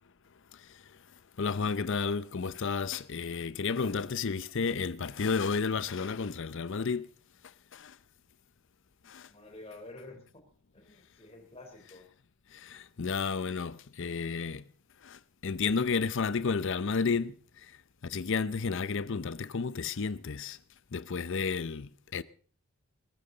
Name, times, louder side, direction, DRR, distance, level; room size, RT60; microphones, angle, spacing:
voice 1, 1.4-7.1 7.7-7.9 9.1-9.3 12.6-14.6 15.0-17.3 18.0-20.6 20.9-22.2, left 5 dB, 55° left, 0.6 m, -32 dB
voice 2, 9.3-10.2 10.7-12.1, left 2 dB, 25° left, 3.7 m, -49 dB
21.5 x 14.0 x 3.9 m
head